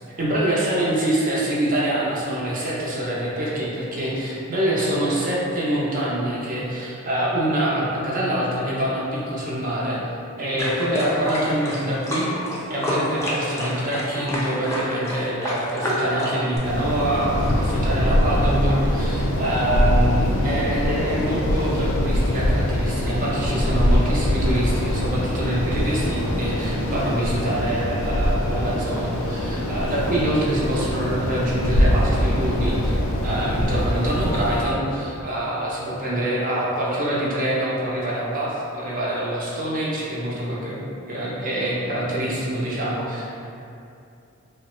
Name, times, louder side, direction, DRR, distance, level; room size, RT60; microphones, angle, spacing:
voice 1, 0.2-10.0 10.4-12.4 12.7-43.5, right 1 dB, 40° right, -6 dB, 0.5 m, -25 dB
sound 1, 10.6-16.6, equal, 15° left, 0.4 m, -27 dB
sound 2, 16.6-34.6, equal, 80° left, 0.4 m, -23 dB
3.0 x 2.0 x 2.9 m, 2.6 s
head